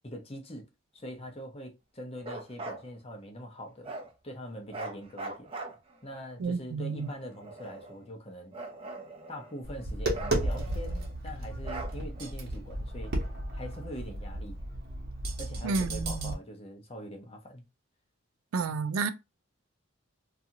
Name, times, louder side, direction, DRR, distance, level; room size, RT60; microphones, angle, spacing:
voice 1, 0.0-0.7 0.9-3.9 4.2-5.5 6.0-8.6 9.3-13.1 13.5-14.6 15.4-17.7, equal, 30° left, 0.6 m, -43 dB
Bark, 2.2-2.8 3.8-4.1 4.7-6.2 7.0-8.0 8.5-9.6 10.1-11.1 11.6-12.3, right 2 dB, 25° right, 0.5 m, -41 dB
voice 2, 6.4-7.1 15.6-16.3 18.5-19.1, right 4 dB, 90° right, 0.4 m, -30 dB
Tap, 9.6-16.3, right 1 dB, 50° right, 0.9 m, -34 dB
2.7 x 2.4 x 2.7 m
head